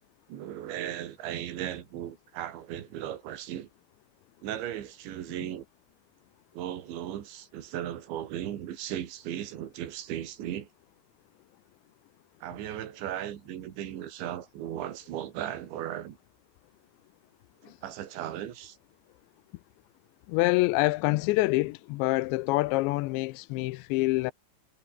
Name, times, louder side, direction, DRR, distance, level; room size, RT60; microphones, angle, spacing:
voice 1, 0.3-3.7 4.4-5.7 6.5-10.7 12.4-16.2 17.6-18.8, right 11 dB, 75° right, 4.4 m, -36 dB
voice 2, 20.3-24.3, left 21 dB, 80° left, 2.9 m, -26 dB
omnidirectional pair, 5.3 m